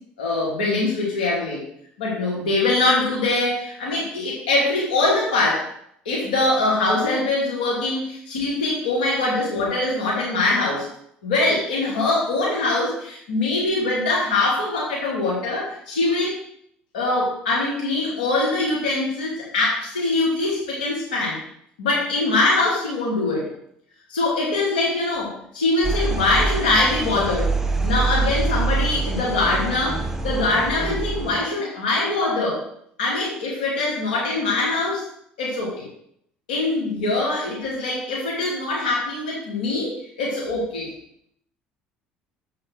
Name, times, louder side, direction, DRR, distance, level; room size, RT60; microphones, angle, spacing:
voice 1, 0.2-1.6 2.0-5.7 6.0-10.9 11.2-16.4 16.9-21.4 21.8-23.5 24.1-27.5 27.8-32.6 33.0-35.0 35.4-35.9 36.5-40.9, left 2 dB, 90° left, -4 dB, 2.4 m, -23 dB
sound 1, 25.8-31.4, right 3 dB, 10° right, 1.1 m, -25 dB
7.5 x 4.7 x 6.2 m, 0.70 s
hypercardioid pair, 70°, 5 cm